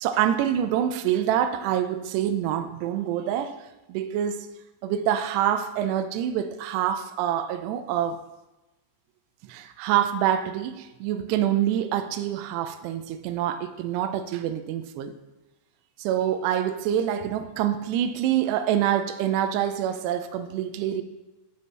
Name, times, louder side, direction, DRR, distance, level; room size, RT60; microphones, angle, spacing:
voice 1, 0.0-3.6 3.9-8.2 9.5-15.2 16.0-21.0, right 10 dB, 80° right, 2.6 m, -26 dB
13.0 x 7.0 x 3.2 m
omnidirectional pair, 5.0 m